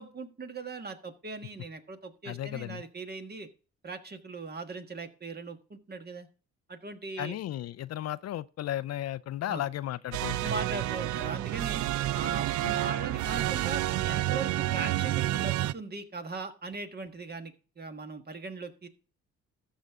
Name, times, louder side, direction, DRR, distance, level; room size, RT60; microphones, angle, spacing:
voice 1, 0.0-3.5 3.8-6.3 6.7-7.4 9.5-9.6 10.4-11.9 12.1-18.9, right 3 dB, 35° right, 1.6 m, -39 dB
voice 2, 2.3-2.8 7.2-10.4 12.6-12.8, left 13 dB, 60° left, 0.5 m, -34 dB
sound 1, 10.1-15.7, right 15 dB, 75° right, 0.5 m, -29 dB
13.5 x 6.8 x 3.6 m
cardioid pair, 90°, 30 cm